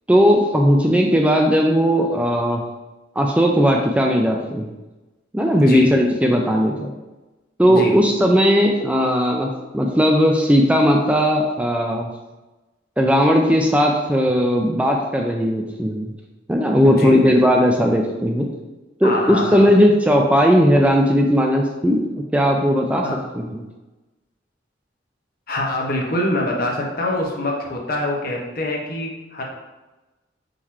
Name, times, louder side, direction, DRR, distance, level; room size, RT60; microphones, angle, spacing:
voice 1, 0.1-2.6 3.2-4.7 5.3-6.9 7.6-12.1 13.0-16.1 16.5-18.5 19.0-22.0 22.3-23.1 23.3-23.6, equal, 5° right, 1 dB, 0.3 m, -17 dB
voice 2, 5.6-5.9 7.7-8.0 16.8-17.2 19.0-19.7 23.0-23.2 25.5-29.4, left 1 dB, 55° left, -1 dB, 0.9 m, -24 dB
3.9 x 3.1 x 4.1 m, 1.1 s
head